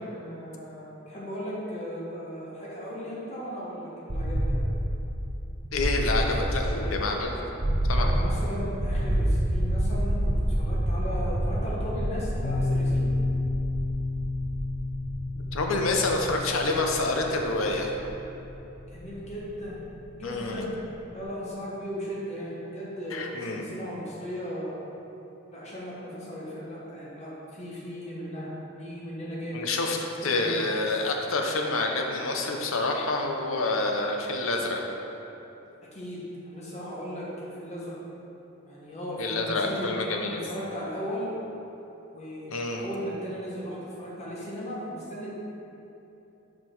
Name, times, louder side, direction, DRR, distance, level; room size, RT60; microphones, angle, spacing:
voice 1, 0.0-4.6 7.9-13.1 18.9-19.8 20.1-20.7 21.1-24.7 25.5-29.6 30.2-30.6 35.9-38.0 38.7-39.9 40.2-41.3 42.1-42.5 42.8-45.3, equal, 35° left, -6 dB, 1.3 m, -36 dB
sound 1, 4.1-19.9, right 1 dB, 60° right, 1.0 m, -29 dB
voice 2, 5.7-7.3 7.9-8.1 15.5-17.9 20.2-20.6 23.1-23.7 29.5-34.8 39.2-40.5 42.5-42.9, left 2 dB, 90° left, 2 dB, 0.7 m, -28 dB
Piano, 12.4-19.9, left 2 dB, 50° left, 0.4 m, -32 dB
5.6 x 4.9 x 4.5 m, 3.0 s
head